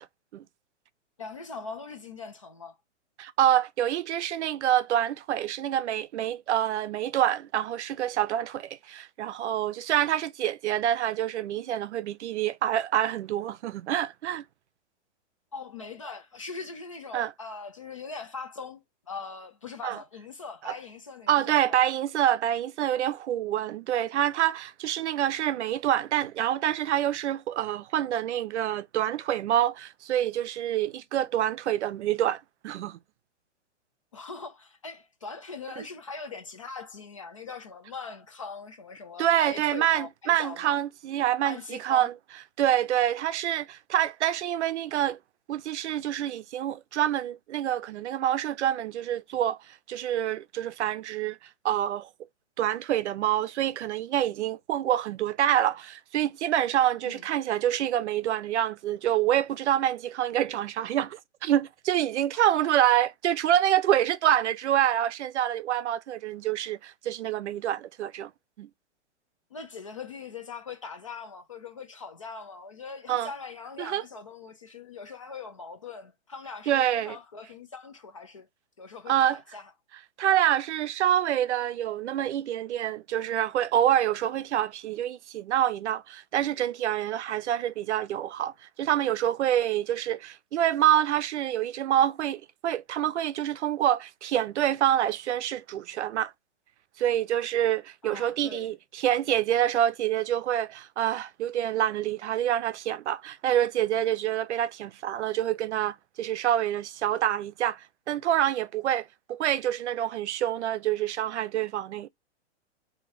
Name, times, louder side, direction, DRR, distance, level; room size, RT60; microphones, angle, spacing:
voice 1, 1.2-2.7 15.5-21.8 34.1-40.8 41.4-42.1 57.0-57.3 62.3-62.7 69.5-78.5 78.8-79.7 98.0-98.7, left 4 dB, 30° left, 0.4 m, -41 dB
voice 2, 3.2-14.4 17.1-17.3 19.8-20.0 20.6-20.7 21.3-33.0 39.2-42.1 42.6-45.2 45.5-49.6 49.9-51.4 51.6-52.1 52.6-68.3 68.6-68.7 73.1-73.3 73.8-74.0 76.7-77.2 79.1-79.4 80.2-88.5 88.8-96.3 97.0-112.1, right 11 dB, 70° right, 0.5 m, -26 dB
3.7 x 2.7 x 3.2 m
hypercardioid pair, 175°, 36 cm